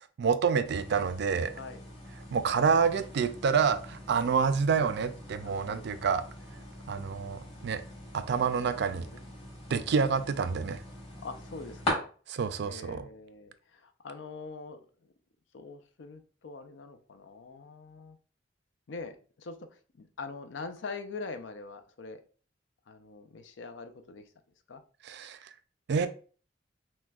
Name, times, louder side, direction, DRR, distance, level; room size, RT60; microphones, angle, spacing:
voice 1, 0.2-1.5 2.3-6.2 6.9-7.8 8.1-9.1 9.7-10.8 12.3-13.1 25.1-25.4 25.9-26.1, right 6 dB, 65° right, 11 dB, 0.4 m, -28 dB
sound 1, 0.6-11.9, left 1 dB, 35° left, 1.8 m, -42 dB
voice 2, 1.6-1.9 5.4-5.8 8.7-9.2 9.7-9.9 11.2-12.1 12.6-14.8 15.5-18.2 18.9-22.2 22.9-24.2 24.7-24.8, left 4 dB, 75° left, 8 dB, 0.5 m, -44 dB
5.8 x 2.2 x 2.3 m, 0.39 s
head